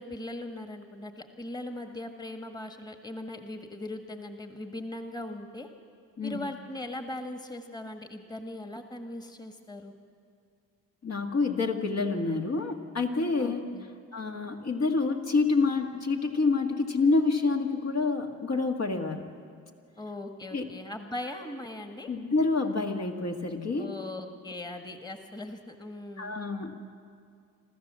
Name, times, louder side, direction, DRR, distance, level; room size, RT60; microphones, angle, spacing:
voice 1, 0.0-5.7 6.2-9.9 13.4-13.9 20.0-22.1 23.8-26.4, left 1 dB, 10° left, 6 dB, 1.7 m, -39 dB
voice 2, 11.0-13.7 14.1-19.2 20.5-20.6 22.1-23.9 26.2-26.8, left 3 dB, 50° left, 2 dB, 2.1 m, -27 dB
27.0 x 14.0 x 7.5 m, 2.3 s
supercardioid pair, 65°, 34 cm